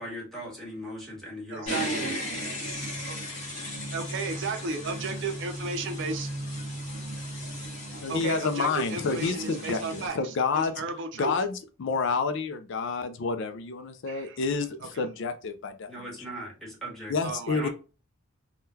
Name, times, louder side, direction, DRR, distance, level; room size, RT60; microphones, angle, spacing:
voice 1, 0.0-2.1 15.9-17.1 17.5-17.7, equal, ahead, 1.4 m, -39 dB
voice 2, 1.5-2.1 3.1-3.2 3.9-6.3 8.1-11.3 14.1-14.4 14.9-15.0 17.2-17.7, right 3 dB, 60° right, 0.5 m, -34 dB
sound 1, 1.7-10.1, equal, 40° left, 1.5 m, -35 dB
voice 3, 8.0-10.8 11.2-16.2 17.1-17.7, left 4 dB, 65° left, 0.4 m, -29 dB
3.6 x 2.2 x 2.7 m
head